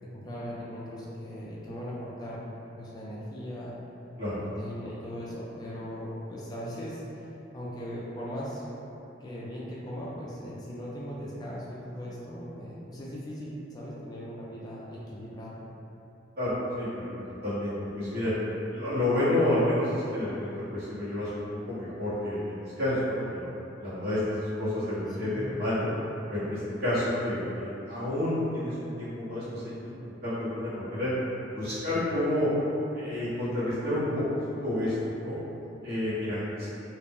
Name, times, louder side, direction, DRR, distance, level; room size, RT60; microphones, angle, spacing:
voice 1, 0.0-2.5 2.8-3.8 4.4-7.3 7.5-8.6 9.2-15.6 25.1-25.4, equal, 20° left, -7 dB, 0.3 m, -39 dB
voice 2, 16.4-17.1 17.4-18.3 18.7-21.3 21.7-23.4 23.8-25.9 26.3-31.1 31.5-32.5 32.9-34.9 35.2-35.4 35.8-36.7, left 1 dB, 55° right, -12 dB, 1.1 m, -29 dB
2.4 x 2.0 x 3.5 m, 2.9 s
head